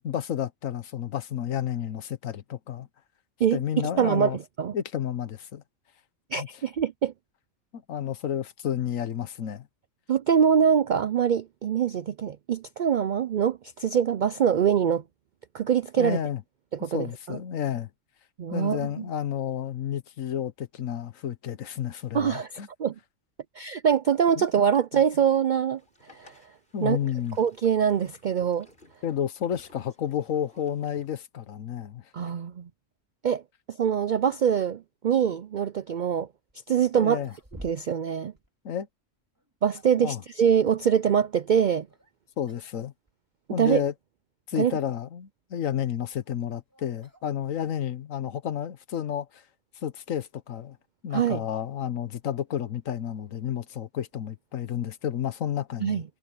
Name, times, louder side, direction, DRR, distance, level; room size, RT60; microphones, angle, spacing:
voice 1, 0.0-2.9 3.5-4.4 4.7-5.6 6.4-6.5 7.9-9.7 16.0-16.4 16.9-17.9 18.5-22.7 24.4-24.5 24.9-25.0 26.7-27.4 29.0-32.0 36.9-37.3 38.6-38.9 39.9-40.2 42.4-42.9 43.5-43.9 44.5-49.4 49.8-50.8 51.0-56.0, left 9 dB, 75° left, 1.4 m, -31 dB
voice 2, 3.4-4.3 4.6-4.7 6.3-7.1 10.1-15.0 15.5-16.2 16.7-17.4 18.4-18.9 22.1-22.5 22.8-22.9 23.6-25.8 26.1-26.3 26.8-27.0 27.4-28.7 32.1-32.7 33.2-33.4 33.7-36.3 36.7-37.2 37.6-38.3 39.6-41.9 43.6-43.8 44.6-44.8 51.1-51.4 55.8-56.0, right 8 dB, 70° right, 0.4 m, -24 dB
Boat Water vehicle, 25.8-31.1, left 1 dB, 40° left, 8.3 m, -57 dB
sound 1, 36.5-36.6 37.0-38.1 38.4-38.5 39.3-40.1 41.9-42.1 42.5-42.8 43.1-43.2 43.9-44.0 45.8-47.9, equal, 15° right, 4.0 m, -50 dB
omnidirectional pair, 1.4 m